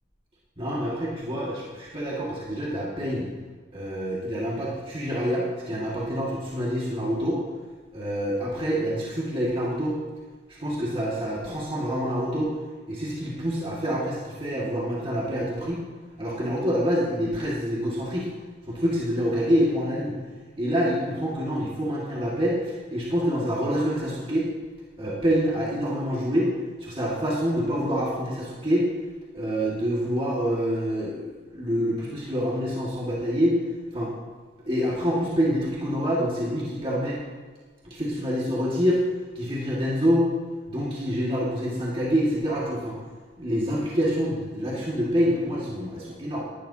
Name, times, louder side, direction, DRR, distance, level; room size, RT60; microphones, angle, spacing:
voice 1, 0.6-3.3 3.7-7.4 7.9-10.0 10.5-12.5 12.9-15.8 16.2-18.3 18.7-20.1 20.6-24.5 25.0-26.5 26.8-28.9 29.3-33.6 33.9-34.1 34.7-37.2 37.8-39.0 39.3-40.3 40.7-42.9 43.4-46.4, equal, 25° right, -6 dB, 2.0 m, -26 dB
18.5 x 12.0 x 2.9 m, 1.4 s
head